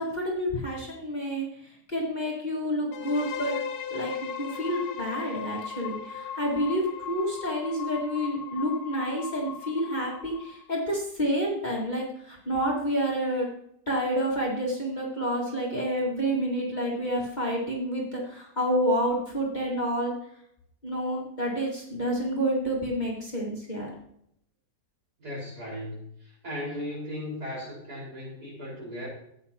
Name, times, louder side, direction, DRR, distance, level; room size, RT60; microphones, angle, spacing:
voice 1, 0.0-3.5 3.9-13.5 13.9-20.1 20.8-23.9, equal, 25° left, -4 dB, 2.0 m, -29 dB
sound 1, 2.9-10.7, left 7 dB, 65° left, 1.3 m, -37 dB
voice 2, 25.2-26.0 26.4-29.1, left 1 dB, 60° right, -5 dB, 5.3 m, -36 dB
13.5 x 8.9 x 2.9 m, 0.71 s
omnidirectional pair, 1.9 m